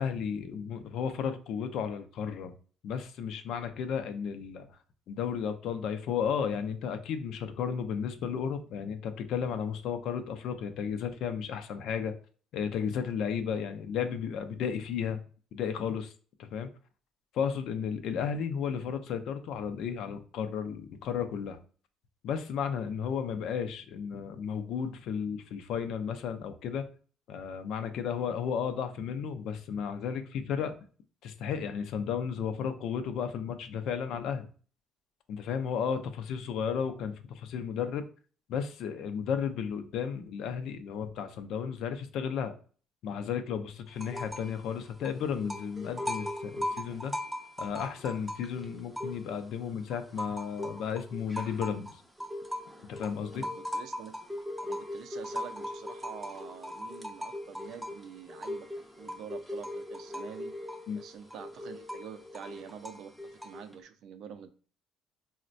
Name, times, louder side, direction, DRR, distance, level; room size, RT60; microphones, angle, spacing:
voice 1, 0.0-2.5 2.8-4.7 5.1-12.1 12.5-15.2 15.5-16.1 16.4-16.7 17.3-21.6 22.2-26.9 27.3-30.8 31.2-34.5 35.3-38.0 38.5-42.5 43.0-47.1 47.6-52.0 52.9-53.5 60.9-61.0, left 7 dB, 65° left, 8 dB, 0.4 m, -33 dB
sound 1, 43.9-44.6 44.8-49.5 49.9-63.7, left 1 dB, ahead, 0.4 m, -39 dB
voice 2, 53.3-54.1 54.6-58.7 59.0-60.5 61.0-64.5, right 8 dB, 65° right, 9 dB, 0.4 m, -46 dB
4.0 x 2.1 x 2.5 m, 0.41 s
cardioid pair, 135°, 0 cm